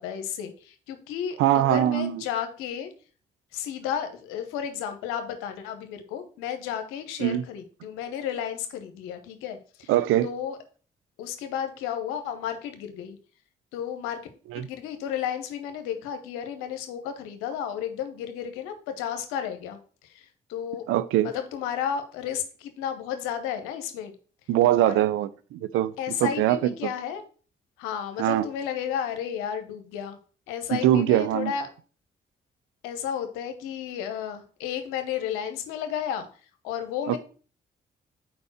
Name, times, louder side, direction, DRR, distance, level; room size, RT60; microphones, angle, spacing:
voice 1, 0.0-2.9 3.5-9.9 10.2-10.6 11.2-13.2 13.7-14.2 14.5-20.8 21.2-24.1 24.7-25.0 26.0-27.2 27.8-30.2 30.5-31.7 32.8-36.3 36.6-37.2, left 9 dB, 90° left, 0.9 m, -33 dB
voice 2, 1.4-2.2 7.2-7.4 9.9-10.3 14.5-14.7 20.9-21.3 24.5-25.9 26.2-26.6 28.2-28.4 30.7-31.5 37.1-37.2, right 13 dB, 80° right, 0.5 m, -22 dB
4.7 x 4.3 x 5.8 m
hypercardioid pair, 45°, 21 cm